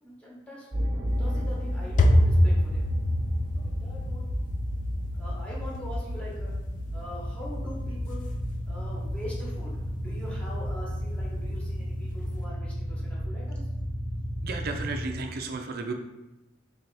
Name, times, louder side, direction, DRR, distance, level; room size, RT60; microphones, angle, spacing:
voice 1, 0.0-0.7 1.0-2.8 3.5-4.3 5.1-6.5 6.9-8.3 8.7-13.6 14.7-15.0, left 1 dB, 5° left, -6 dB, 1.1 m, -43 dB
sound 1, 0.7-15.1, equal, 30° right, 1.0 m, -33 dB
sound 2, 1.1-12.4, left 1 dB, 40° left, 0.4 m, -29 dB
voice 2, 14.4-15.9, right 4 dB, 50° right, 4 dB, 0.4 m, -33 dB
3.3 x 2.8 x 4.6 m, 1.0 s
head